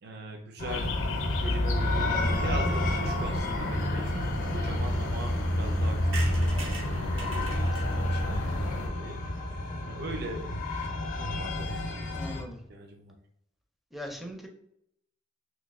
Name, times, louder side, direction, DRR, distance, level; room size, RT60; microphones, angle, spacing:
voice 1, 0.0-0.9 1.3-4.3 4.5-6.8 7.1-9.2 9.8-10.6 11.2-13.1, right 2 dB, 60° right, 3 dB, 0.5 m, -41 dB
sound 1, 0.6-12.4, left 2 dB, 45° left, 0.6 m, -32 dB
sound 2, 0.7-8.9, left 1 dB, 85° left, 0.5 m, -30 dB
sound 3, 6.1-9.8 10.2-10.3 10.5-10.6 10.8-10.9 11.1-11.4, right 1 dB, 80° right, 0.9 m, -40 dB
voice 2, 12.1-12.6 13.9-14.5, left 1 dB, ahead, 2 dB, 0.5 m, -40 dB
3.1 x 2.7 x 3.5 m, 0.75 s
head